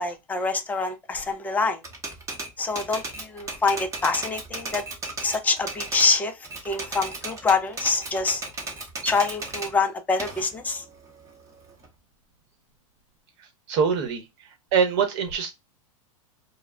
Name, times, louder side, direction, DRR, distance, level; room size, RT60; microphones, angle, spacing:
voice 1, 0.0-1.8 2.6-4.8 5.2-6.4 6.7-8.4 9.0-10.8, left 4 dB, 10° left, 0.4 m, -25 dB
Typewriter, 1.8-6.1 6.4-9.7 10.2-11.9, right 2 dB, 15° right, 0.8 m, -35 dB
voice 2, 13.4-14.2 14.7-15.5, right 6 dB, 50° right, 0.9 m, -24 dB
2.1 x 2.1 x 3.5 m
hypercardioid pair, 130°, 18 cm